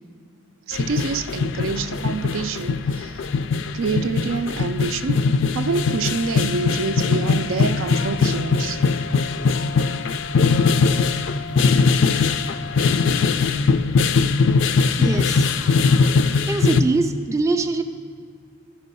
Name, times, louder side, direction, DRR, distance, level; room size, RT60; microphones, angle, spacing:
sound 1, 0.7-16.8, left 4 dB, 65° left, 0.4 m, -20 dB
voice 1, 0.7-3.1 3.7-5.2 5.5-8.8, right 4 dB, 80° right, 10 dB, 0.4 m, -26 dB
Brass instrument, 5.6-13.4, left 5 dB, 90° left, 0.8 m, -38 dB
voice 2, 14.6-15.5 16.5-17.8, right 3 dB, 15° right, 5 dB, 0.4 m, -23 dB
13.5 x 5.4 x 5.4 m, 2.2 s
head